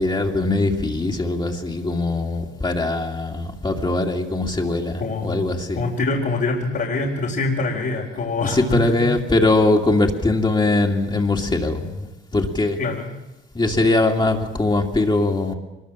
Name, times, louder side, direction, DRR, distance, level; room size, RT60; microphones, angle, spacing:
voice 1, 0.0-5.8 8.4-12.1 12.3-12.8 13.5-15.5, left 2 dB, 25° left, 1 dB, 2.6 m, -21 dB
voice 2, 5.0-9.1 12.8-13.2, left 3 dB, 55° left, -3 dB, 3.8 m, -25 dB
24.0 x 21.5 x 7.5 m, 1.0 s
cardioid pair, 90°, 20 cm